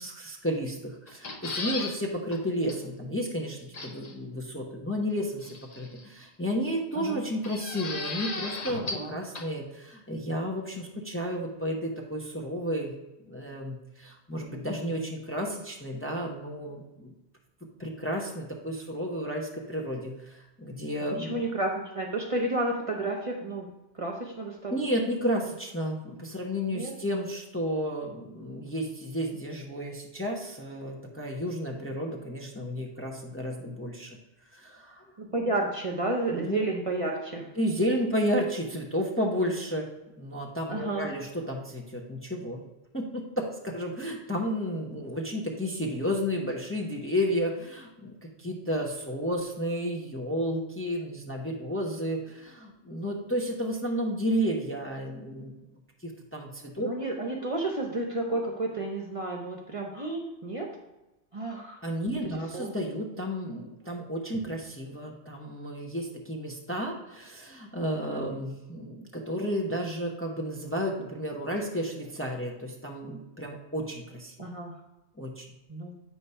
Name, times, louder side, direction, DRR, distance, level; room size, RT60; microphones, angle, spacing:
voice 1, 0.0-13.0 13.3-17.1 17.8-21.4 24.7-34.2 34.5-35.0 36.3-36.6 37.6-39.9 40.2-42.6 42.9-55.5 56.0-56.9 61.8-74.3 75.2-75.4, equal, 15° left, -1 dB, 0.8 m, -32 dB
sound 1, 1.1-1.9 2.3-2.4 2.7-2.8 3.7-4.1 5.4-6.0 7.4-9.1 9.3-9.4, left 3 dB, 40° left, 0.8 m, -35 dB
voice 2, 21.2-23.7 23.9-24.7 26.7-26.9 35.2-37.5 40.7-41.1 44.9-45.0 56.8-60.7 61.3-61.8 62.5-62.7 74.4-74.7 75.7-75.9, right 2 dB, 35° right, 0 dB, 0.8 m, -31 dB
8.3 x 3.2 x 5.5 m, 0.97 s
omnidirectional pair, 1.1 m